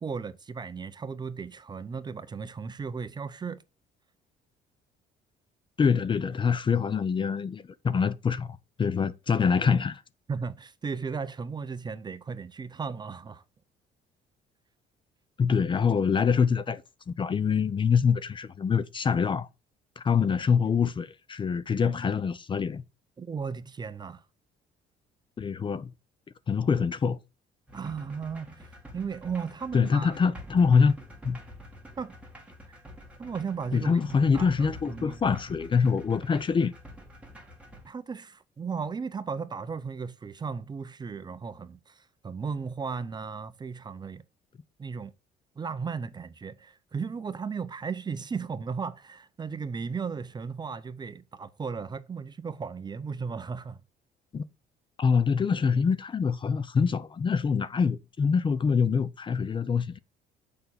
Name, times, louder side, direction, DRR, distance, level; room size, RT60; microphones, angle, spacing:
voice 1, 0.0-3.6 10.3-13.4 23.2-24.2 27.7-30.2 32.0-32.1 32.7-32.8 33.2-35.4 37.8-44.2 44.8-45.1 45.6-53.8, right 5 dB, 25° right, 0.6 m, -36 dB
voice 2, 5.8-8.5 8.8-10.0 15.4-16.8 17.1-19.5 20.0-22.8 25.4-25.9 26.5-27.2 29.7-30.9 31.2-31.4 33.7-36.8 54.3-54.4 55.0-60.0, left 6 dB, 30° left, 0.6 m, -25 dB
sound 1, 27.7-37.9, left 1 dB, 5° right, 2.3 m, -47 dB
6.8 x 5.4 x 4.3 m
cardioid pair, 110°, 17 cm